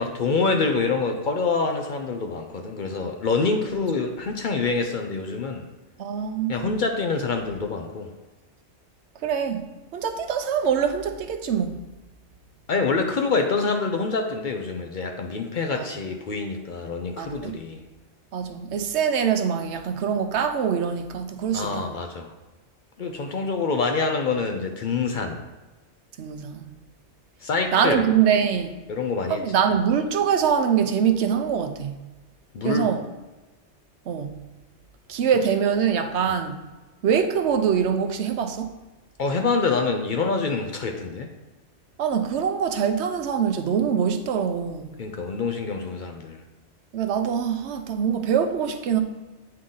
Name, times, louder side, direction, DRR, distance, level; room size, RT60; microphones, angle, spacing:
voice 1, 0.0-5.7 6.5-8.1 12.7-17.8 21.5-22.3 23.0-25.5 27.4-28.1 28.9-29.4 32.5-32.9 36.2-36.3 39.2-41.3 45.0-46.4, left 4 dB, 55° left, 0.7 m, -26 dB
voice 2, 6.0-6.7 9.2-9.7 9.9-11.8 15.8-15.9 17.2-17.5 18.3-21.9 26.2-26.7 27.7-28.8 29.3-32.0 32.6-33.0 34.1-34.4 35.1-36.6 37.0-38.7 42.0-44.9 46.9-49.0, right 7 dB, 75° right, 0.9 m, -24 dB
8.7 x 3.8 x 3.8 m
omnidirectional pair, 1.2 m